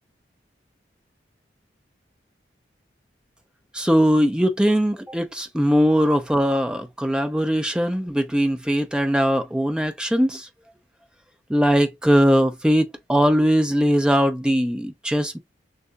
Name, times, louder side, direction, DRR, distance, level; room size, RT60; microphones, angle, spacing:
voice 1, 3.7-10.5 11.5-15.4, equal, 5° right, 0.5 m, -20 dB
6.6 x 2.6 x 2.3 m
head